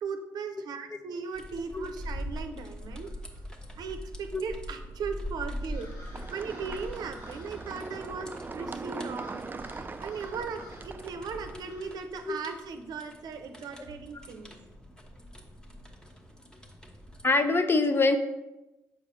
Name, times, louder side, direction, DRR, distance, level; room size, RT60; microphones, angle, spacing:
voice 1, 0.0-3.1 3.8-9.5 10.0-14.5, right 5 dB, 65° right, 7 dB, 0.7 m, -38 dB
sound 1, 1.3-17.3, equal, 10° left, 1.1 m, -43 dB
sound 2, 5.7-11.9, left 1 dB, 80° left, 2.2 m, -50 dB
sound 3, 6.1-11.6, right 4 dB, 25° right, 0.4 m, -41 dB
voice 2, 17.2-18.2, left 3 dB, 30° left, 8 dB, 0.7 m, -24 dB
6.9 x 4.6 x 3.2 m, 1.0 s
hypercardioid pair, 50°, 7 cm